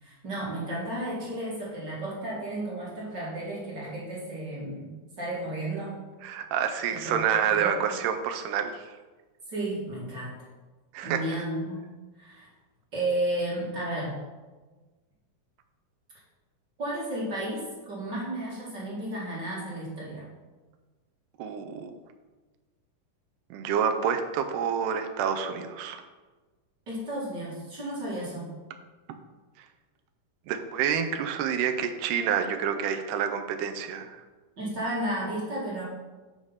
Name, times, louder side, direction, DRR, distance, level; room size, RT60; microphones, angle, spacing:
voice 1, 0.0-4.9 5.2-6.0 6.9-8.0 9.5-10.4 11.0-11.8 12.2-12.5 12.9-14.1 16.8-20.3 26.9-28.5 34.6-35.8, right 1 dB, 35° right, -6 dB, 2.1 m, -33 dB
voice 2, 6.2-8.9 10.9-11.2 21.4-21.9 23.5-26.0 29.6-29.7 30.5-34.2, right 8 dB, 80° right, 6 dB, 2.0 m, -28 dB
8.0 x 4.7 x 5.6 m, 1.3 s
omnidirectional pair, 3.9 m